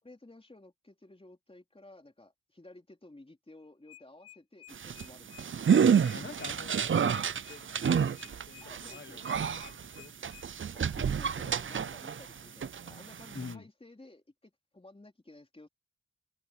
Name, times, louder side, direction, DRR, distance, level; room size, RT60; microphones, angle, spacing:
voice 1, 0.0-5.5 8.6-9.2 10.7-15.7, left 2 dB, 15° left, 3.8 m, -54 dB
sound 1, 3.6-10.5, left 12 dB, 80° left, 2.0 m, -53 dB
sound 2, 4.7-12.3 12.6-13.5, right 7 dB, 35° right, 0.5 m, -29 dB
voice 2, 6.1-10.1 13.3-13.6, left 5 dB, 30° left, 1.5 m, -48 dB
open air
wide cardioid pair, 140°, 35 cm